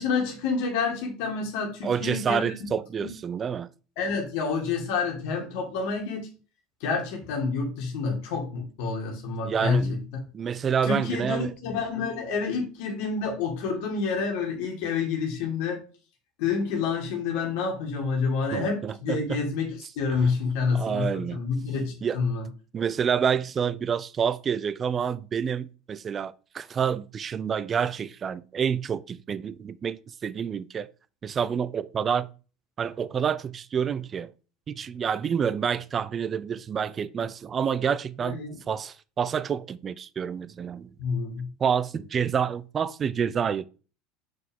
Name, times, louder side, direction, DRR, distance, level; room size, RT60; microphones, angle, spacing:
voice 1, 0.0-2.7 4.0-6.3 6.8-10.0 10.9-15.8 16.4-22.4 38.2-38.5 41.0-41.5, left 5 dB, 70° left, 1.8 m, -28 dB
voice 2, 1.8-3.7 9.4-10.0 10.3-11.5 18.5-19.5 20.7-21.4 22.0-22.2 22.7-30.9 31.2-32.3 32.8-34.3 34.7-41.0 41.6-43.7, right 7 dB, 35° right, 0.4 m, -28 dB
6.1 x 4.6 x 3.6 m
hypercardioid pair, 85°, 0 cm